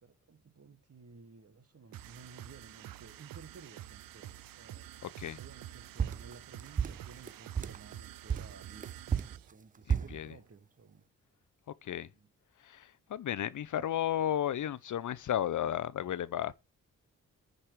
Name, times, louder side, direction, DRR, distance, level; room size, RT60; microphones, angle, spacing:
voice 1, 0.0-4.9 5.2-11.0 12.1-12.3, right 4 dB, 45° right, 1.5 m, -55 dB
sound 1, 1.9-9.5, right 13 dB, 80° right, 0.6 m, -48 dB
voice 2, 5.0-5.4 9.9-10.3 11.8-12.1 12.6-16.5, left 10 dB, 60° left, 0.7 m, -34 dB
sound 2, 6.0-7.9 8.3-10.2, right 7 dB, 25° right, 0.4 m, -33 dB
10.0 x 5.5 x 4.8 m
supercardioid pair, 45°, 34 cm